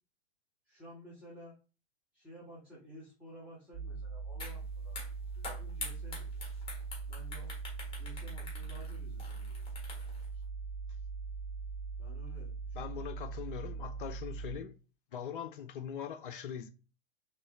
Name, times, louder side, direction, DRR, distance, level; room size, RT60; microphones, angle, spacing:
voice 1, 0.7-1.5 2.1-5.0 5.4-6.4 7.1-7.5 7.9-9.6 10.3-10.4 12.0-13.3, right 1 dB, 5° right, 1.5 m, -53 dB
sound 1, 3.7-14.6, right 4 dB, 40° right, 1.6 m, -41 dB
sound 2, 4.4-4.6 4.9-10.2, left 3 dB, 15° left, 1.5 m, -45 dB
voice 2, 12.7-14.7 15.1-16.7, left 8 dB, 50° left, 0.5 m, -41 dB
4.3 x 3.2 x 3.2 m
figure-of-eight pair, 105°, 33 cm